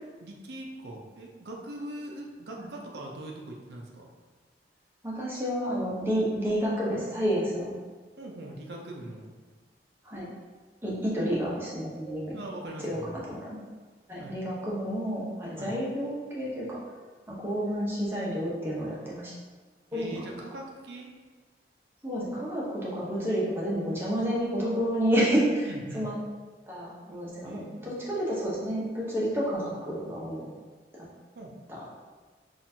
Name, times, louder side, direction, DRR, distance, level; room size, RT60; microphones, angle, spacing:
voice 1, 0.2-4.1 8.2-9.3 12.3-13.2 14.2-14.4 15.6-15.8 19.9-21.1 25.6-26.1 27.4-28.2 31.4-31.5, right 1 dB, 65° right, 0 dB, 0.5 m, -41 dB
voice 2, 5.0-7.7 10.0-10.3 10.8-12.4 12.8-13.6 14.1-16.8 17.3-19.3 19.9-20.2 22.0-26.1 26.7-30.5 30.9-31.1 31.7-31.8, equal, 15° right, -6 dB, 0.7 m, -30 dB
4.3 x 2.5 x 2.7 m, 1.4 s
head